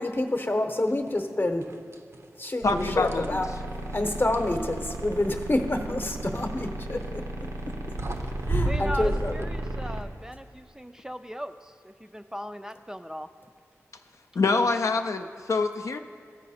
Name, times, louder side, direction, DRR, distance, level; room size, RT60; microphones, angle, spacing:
voice 1, 0.0-1.7 2.4-3.5 3.9-7.7 8.5-9.5, left 1 dB, 40° left, 6 dB, 0.8 m, -28 dB
sound 1, 1.1-1.3 1.6-2.3 2.7-4.5 6.7-7.0 7.7-7.8 8.0-9.5, right 2 dB, 55° right, 0.6 m, -32 dB
voice 2, 2.6-3.4 14.4-16.0, left 3 dB, 70° left, 6 dB, 0.3 m, -25 dB
sound 2, 2.6-10.0, right 1 dB, 85° right, 0.8 m, -35 dB
voice 3, 8.7-13.3, equal, 10° right, 8 dB, 0.3 m, -38 dB
14.0 x 4.7 x 4.2 m, 2.4 s
cardioid pair, 50°, 5 cm